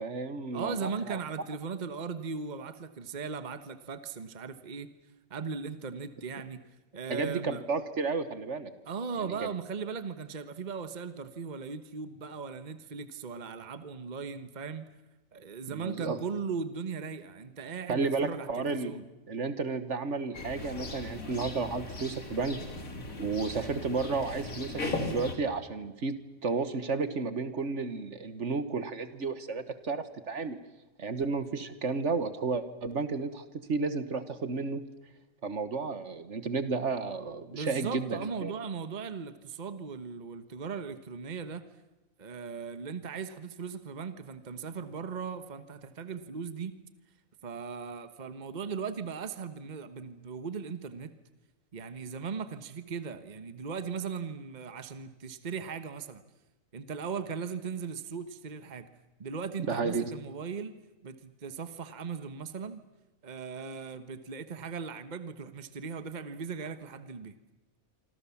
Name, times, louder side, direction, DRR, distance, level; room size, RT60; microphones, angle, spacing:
voice 1, 0.0-1.2 7.1-8.7 9.3-9.5 15.7-16.2 17.9-18.9 19.3-22.6 23.2-26.2 26.4-30.6 31.0-34.8 35.4-38.5 59.7-60.0, right 4 dB, 55° right, 11 dB, 1.6 m, -32 dB
voice 2, 0.5-4.9 5.3-6.6 6.9-7.6 8.9-14.9 15.3-19.0 37.5-41.6 42.2-46.7 47.4-51.1 51.7-56.2 56.7-58.9 59.2-60.7 61.0-62.8 63.2-67.3, right 5 dB, 35° right, 10 dB, 1.2 m, -38 dB
sound 1, 20.3-25.4, left 2 dB, 70° left, 3.3 m, -38 dB
26.0 x 26.0 x 7.2 m, 1.1 s
omnidirectional pair, 1.5 m